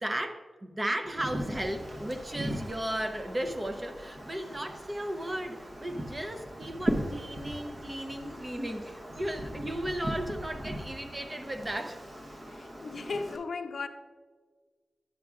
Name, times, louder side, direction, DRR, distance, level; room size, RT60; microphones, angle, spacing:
voice 1, 0.0-12.0, right 1 dB, 20° right, 7 dB, 0.5 m, -35 dB
Wind, 1.0-13.4, equal, 35° right, 0.9 m, -39 dB
voice 2, 12.5-13.9, left 4 dB, 65° left, 7 dB, 0.5 m, -36 dB
10.0 x 7.3 x 2.4 m, 1.5 s
wide cardioid pair, 120°, 0 cm